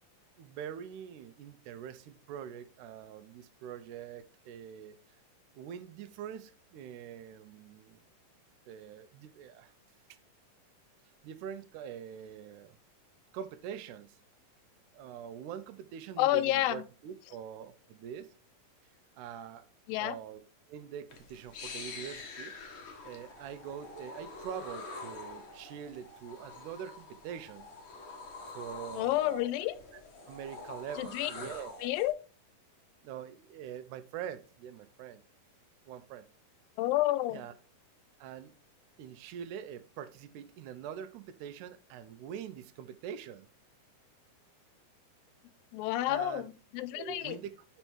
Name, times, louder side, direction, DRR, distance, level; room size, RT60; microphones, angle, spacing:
voice 1, 0.4-5.0 5.6-8.0 8.7-9.7 11.2-12.8 13.3-14.2 14.9-18.3 19.2-19.7 20.0-20.4 20.7-22.8 23.0-27.7 28.5-29.5 29.9-30.0 30.3-31.7 33.0-35.2 35.9-36.3 37.3-37.5 38.2-38.5 39.0-43.5 46.1-46.5 46.9-47.7, right 8 dB, 75° right, 1.9 m, -44 dB
voice 2, 16.2-16.8 19.9-20.2 28.9-29.8 31.0-31.3 31.8-32.1 36.8-37.4 45.7-47.4, left 15 dB, 90° left, 2.3 m, -30 dB
sound 1, 21.1-32.1, left 3 dB, 65° left, 1.2 m, -46 dB
5.6 x 5.4 x 4.5 m
omnidirectional pair, 4.0 m